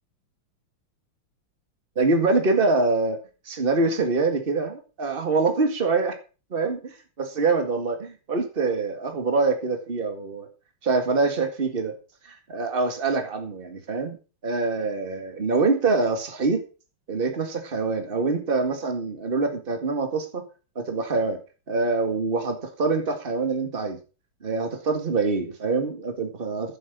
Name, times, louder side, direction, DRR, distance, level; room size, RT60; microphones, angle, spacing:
voice 1, 2.0-3.2 3.5-6.2 6.5-10.5 10.8-11.9 12.2-14.2 14.4-16.6 17.1-20.4 20.8-21.4 21.7-24.0 24.4-26.8, right 3 dB, 25° right, 6 dB, 2.0 m, -25 dB
11.0 x 7.9 x 6.1 m, 0.35 s
omnidirectional pair, 2.3 m